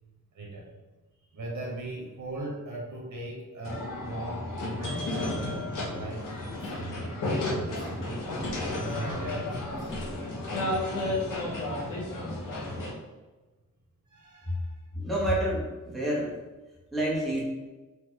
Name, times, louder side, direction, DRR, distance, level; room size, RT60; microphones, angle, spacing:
voice 1, 0.3-0.7 1.2-8.3 8.7-10.0 12.3-12.7 14.1-14.9, right 2 dB, 65° right, -3 dB, 1.3 m, -40 dB
sound 1, 3.6-12.9, left 2 dB, 75° left, 1.3 m, -32 dB
voice 2, 14.9-16.4 16.9-17.4, right 1 dB, ahead, -6 dB, 0.9 m, -28 dB
4.3 x 2.9 x 3.8 m, 1.2 s
wide cardioid pair, 150°, 32 cm